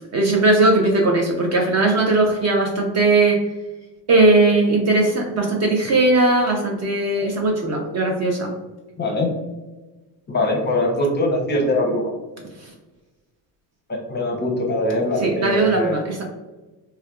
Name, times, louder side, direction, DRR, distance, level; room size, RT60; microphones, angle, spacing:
voice 1, 0.0-3.4 4.1-8.5 12.6-12.7 15.2-16.2, right 2 dB, 35° right, 1 dB, 0.5 m, -18 dB
voice 2, 9.0-9.3 10.3-12.1 13.9-16.0, left 1 dB, 20° left, 1 dB, 0.6 m, -22 dB
3.3 x 2.2 x 2.3 m, 1.2 s
hypercardioid pair, 70°, 49 cm